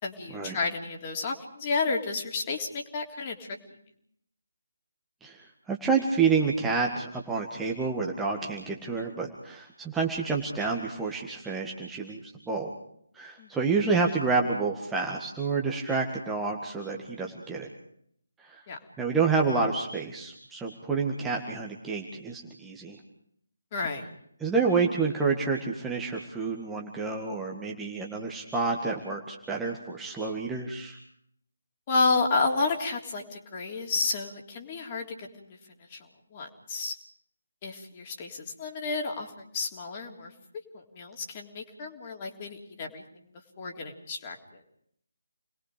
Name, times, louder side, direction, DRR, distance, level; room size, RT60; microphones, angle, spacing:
voice 1, 0.0-3.6 13.4-13.5 18.7-18.8 23.7-24.1 31.9-35.6 35.9-37.0 37.6-40.3 40.7-43.0 43.6-44.6, left 3 dB, 25° left, 1 dB, 3.4 m, -31 dB
voice 2, 5.2-12.2 12.5-12.7 13.1-17.7 18.4-18.6 19.0-23.0 24.4-31.0, right 4 dB, 5° right, -1 dB, 1.8 m, -29 dB
29.5 x 21.5 x 5.1 m, 0.69 s
figure-of-eight pair, 150°, 0 cm